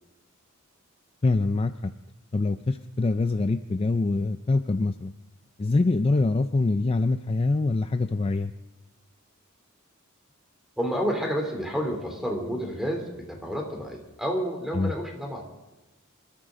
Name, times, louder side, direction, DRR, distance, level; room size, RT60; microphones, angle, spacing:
voice 1, 1.2-1.9 2.3-5.1 5.6-8.5 14.7-14.9, left 3 dB, 25° left, 10 dB, 0.4 m, -24 dB
voice 2, 10.8-15.4, equal, ahead, 1 dB, 3.1 m, -30 dB
26.5 x 13.5 x 3.8 m, 1.1 s
head